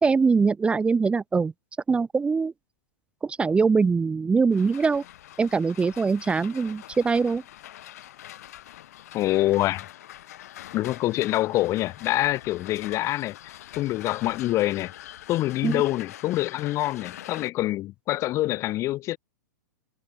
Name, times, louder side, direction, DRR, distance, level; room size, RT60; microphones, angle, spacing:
voice 1, 0.0-1.5 1.9-2.5 3.2-5.0 5.4-7.4 15.6-15.8, right 4 dB, 10° right, 0.6 m, -22 dB
sound 1, 4.5-17.5, left 13 dB, 55° left, 2.8 m, -44 dB
voice 2, 9.1-9.8 10.7-14.9 15.3-19.2, left 16 dB, 30° left, 0.6 m, -26 dB
figure-of-eight pair, 100°, 10 cm